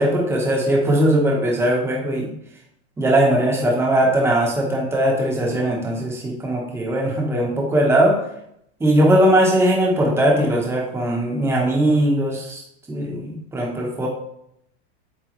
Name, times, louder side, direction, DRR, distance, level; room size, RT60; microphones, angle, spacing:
voice 1, 0.0-2.3 3.0-8.2 8.8-12.6 12.9-14.1, right 1 dB, 5° right, -2 dB, 1.1 m, -19 dB
8.1 x 4.0 x 3.1 m, 0.75 s
supercardioid pair, 155°, 35 cm